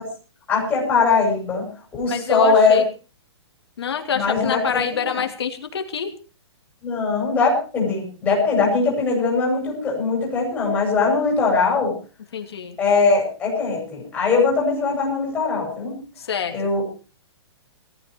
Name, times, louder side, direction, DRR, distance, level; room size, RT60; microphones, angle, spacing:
voice 1, 0.5-1.7 1.9-2.8 4.1-5.2 6.8-11.9 12.8-16.0 16.5-16.9, left 4 dB, 5° left, -2 dB, 6.1 m, -21 dB
voice 2, 2.1-2.8 3.8-6.1 12.3-12.8 16.2-16.5, left 7 dB, 60° left, 5 dB, 2.7 m, -26 dB
18.5 x 14.0 x 4.6 m, 0.36 s
hypercardioid pair, 175°, 15 cm